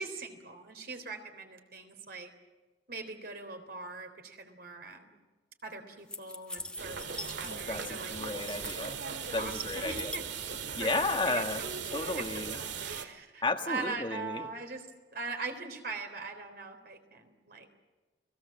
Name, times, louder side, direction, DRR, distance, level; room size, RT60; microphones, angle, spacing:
voice 1, 0.0-2.3 2.9-5.2 5.6-8.1 9.3-10.2 10.8-12.3 12.8-14.9 15.1-17.7, right 4 dB, 55° right, 6 dB, 3.7 m, -41 dB
sound 1, 6.1-7.8 8.1-9.0 9.5-11.0, left 1 dB, 5° left, 1.4 m, -43 dB
sound 2, 6.8-13.1, right 6 dB, 75° right, 2.0 m, -38 dB
voice 2, 7.4-8.9 9.3-10.1 10.7-11.6 11.9-12.6 13.4-14.5, left 3 dB, 25° left, 6 dB, 1.5 m, -33 dB
30.0 x 19.5 x 7.4 m, 1.2 s
head